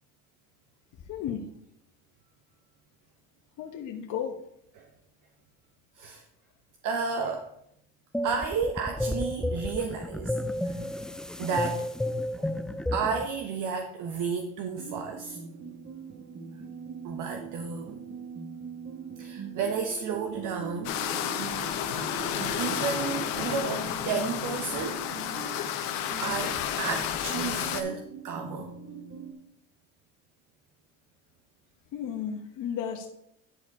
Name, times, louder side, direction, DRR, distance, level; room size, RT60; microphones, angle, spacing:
voice 1, 1.1-1.4 3.6-4.4 31.9-33.1, left 8 dB, 55° left, 3 dB, 1.1 m, -33 dB
voice 2, 6.8-7.5 8.2-10.4 10.6-11.0 11.4-11.9 12.4-12.6 12.9-15.4 17.0-18.0 19.2-21.0 22.6-25.1 26.2-28.7, right 5 dB, 55° right, 4 dB, 1.0 m, -32 dB
sound 1, 8.1-13.3, left 1 dB, ahead, 0.3 m, -32 dB
sound 2, 14.8-29.3, right 6 dB, 35° right, 1.4 m, -42 dB
sound 3, 20.8-27.8, left 10 dB, 70° left, 1.0 m, -31 dB
10.0 x 4.5 x 4.7 m, 0.75 s
supercardioid pair, 85°, 37 cm